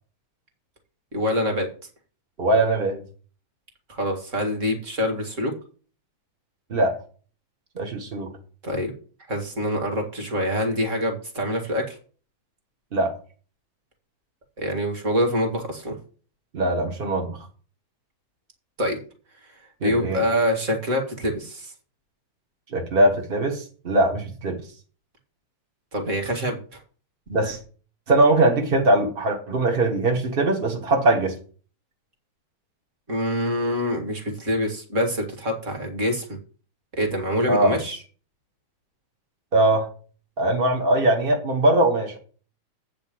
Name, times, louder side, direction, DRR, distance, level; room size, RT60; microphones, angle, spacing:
voice 1, 1.1-1.7 3.9-5.5 8.6-8.9 9.3-12.0 14.6-16.0 18.8-19.0 19.8-21.7 25.9-26.8 33.1-36.4 37.0-38.0, equal, 30° right, 3 dB, 1.8 m, -25 dB
voice 2, 2.4-3.0 6.7-7.0 7.7-8.3 12.9-13.1 16.5-17.4 19.8-20.2 22.7-24.6 27.3-27.6 28.1-31.3 37.5-37.7 39.5-39.9 40.4-42.2, right 1 dB, 70° right, 2 dB, 0.5 m, -21 dB
8.2 x 5.2 x 7.6 m, 0.40 s
omnidirectional pair, 3.5 m